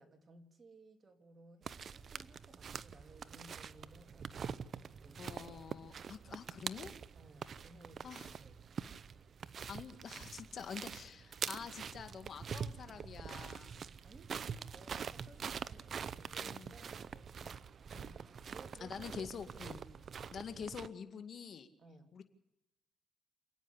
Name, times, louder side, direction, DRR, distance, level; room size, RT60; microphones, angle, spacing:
voice 1, 0.0-5.6 7.1-8.7 14.0-17.6 18.5-20.1 20.4-20.7 21.8-22.1, right 3 dB, 35° right, 5 dB, 3.0 m, -59 dB
sound 1, 1.6-20.9, right 6 dB, 50° right, 0.7 m, -45 dB
voice 2, 5.2-6.9 8.0-8.3 9.7-13.7 16.4-16.7 17.9-18.2 18.8-19.8 20.3-21.7 22.1-22.2, left 6 dB, 55° left, 8 dB, 2.0 m, -47 dB
28.0 x 9.4 x 9.8 m, 0.95 s
cardioid pair, 90°, 0 cm